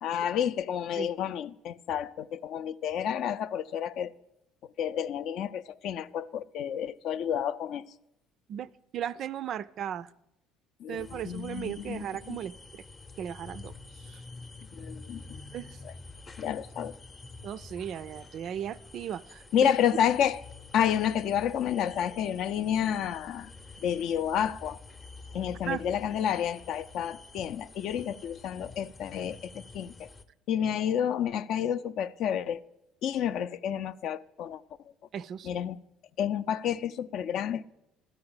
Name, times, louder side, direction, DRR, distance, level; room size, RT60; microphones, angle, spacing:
voice 1, 0.0-4.1 4.8-7.9 10.8-12.4 14.7-15.4 15.8-15.9 16.4-16.9 19.5-20.4 20.7-23.5 23.8-24.8 25.3-30.1 30.5-32.6 33.0-34.6 35.4-35.8 36.2-37.6, left 9 dB, 60° left, 0.4 m, -30 dB
voice 2, 8.5-10.1 10.9-12.8 13.2-13.7 14.0-14.2 15.5-15.8 17.4-19.7 25.7-25.8 35.1-35.6, right 10 dB, 55° right, 0.3 m, -36 dB
sound 1, 11.0-30.2, left 3 dB, 25° left, 0.7 m, -48 dB
12.5 x 4.8 x 8.8 m
cardioid pair, 105°, 0 cm